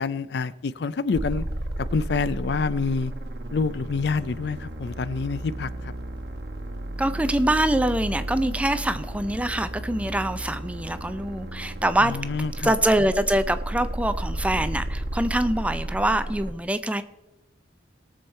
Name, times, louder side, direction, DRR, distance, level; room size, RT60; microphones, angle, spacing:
voice 1, 0.0-1.4 1.8-3.1 3.5-5.9 12.0-12.7, left 4 dB, 60° left, 17 dB, 0.4 m, -27 dB
sound 1, 1.1-16.5, right 1 dB, 60° right, 1.3 m, -33 dB
voice 2, 7.0-12.2 12.6-17.0, right 1 dB, 5° right, 11 dB, 0.4 m, -24 dB
18.0 x 7.1 x 4.3 m, 1.0 s
head